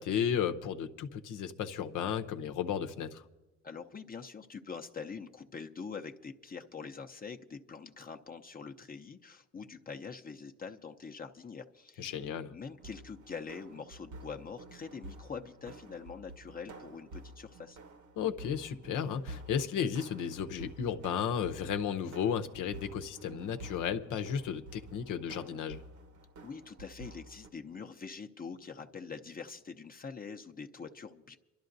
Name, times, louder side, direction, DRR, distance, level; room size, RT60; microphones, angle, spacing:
voice 1, 0.0-3.2 12.0-12.5 18.2-25.8, left 8 dB, 85° left, 0.8 m, -34 dB
voice 2, 3.6-12.1 12.5-17.8 26.4-31.4, left 5 dB, 30° left, 0.7 m, -44 dB
sound 1, 12.8-27.5, right 2 dB, 70° right, 1.2 m, -50 dB
29.5 x 12.0 x 2.6 m
cardioid pair, 90°, 30 cm